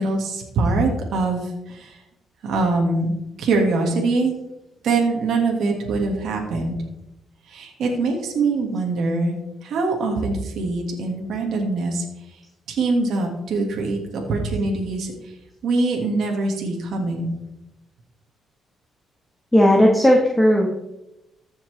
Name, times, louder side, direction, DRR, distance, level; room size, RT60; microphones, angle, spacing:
voice 1, 0.0-2.0 2.4-3.1 3.4-4.3 4.8-6.8 7.5-9.3 9.6-12.4 12.7-15.3 15.6-17.3, right 3 dB, 70° right, 0 dB, 1.8 m, -23 dB
voice 2, 19.5-20.7, equal, 10° left, -1 dB, 1.4 m, -15 dB
14.5 x 5.8 x 3.3 m, 0.91 s
cardioid pair, 90°, 0 cm